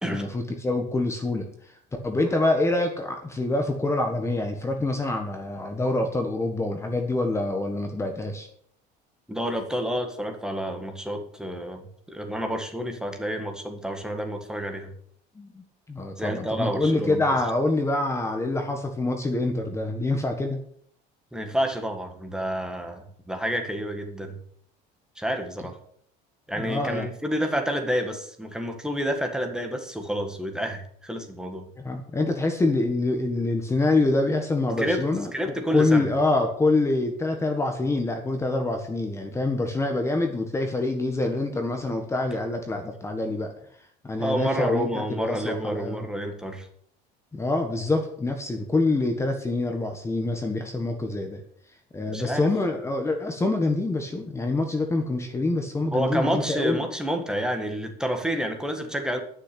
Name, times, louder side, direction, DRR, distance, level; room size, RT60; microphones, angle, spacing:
voice 1, 0.0-1.5 2.0-8.5 15.3-20.6 26.6-27.1 31.8-35.3 35.7-43.5 44.0-46.0 47.3-51.4 51.9-56.8, left 2 dB, 15° left, 4 dB, 1.5 m, -26 dB
voice 2, 9.3-14.9 16.2-17.2 21.3-24.4 25.2-25.8 26.5-31.7 34.8-35.0 35.3-36.1 44.1-46.7 52.1-52.4 55.9-59.2, equal, 5° right, 5 dB, 1.7 m, -29 dB
11.0 x 6.7 x 8.4 m, 0.65 s
cardioid pair, 135°, 19 cm